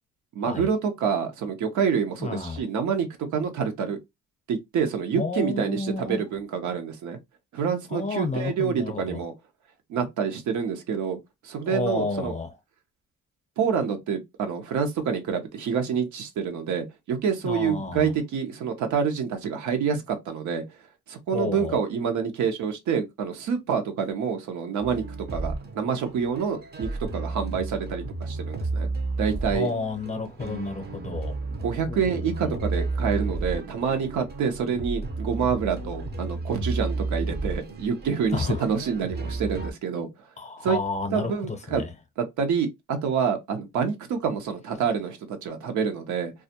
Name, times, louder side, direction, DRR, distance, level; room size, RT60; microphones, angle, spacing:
voice 1, 0.3-3.1 3.3-4.0 4.5-7.2 7.5-9.3 9.9-11.2 11.4-12.3 13.6-20.6 21.1-25.0 25.3-28.9 29.2-29.7 31.6-40.1 40.6-40.8 41.1-41.8 42.2-46.3, right 6 dB, 70° right, 0.8 m, -27 dB
voice 2, 2.2-2.6 5.1-6.2 7.9-9.2 11.6-12.5 17.4-18.1 21.3-21.8 29.5-31.4 31.9-32.6 38.3-38.7 40.4-41.9, left 3 dB, 25° left, 0.7 m, -31 dB
sound 1, 24.8-39.7, right 3 dB, 35° right, 0.6 m, -32 dB
2.3 x 2.1 x 2.7 m
cardioid pair, 90°, 30 cm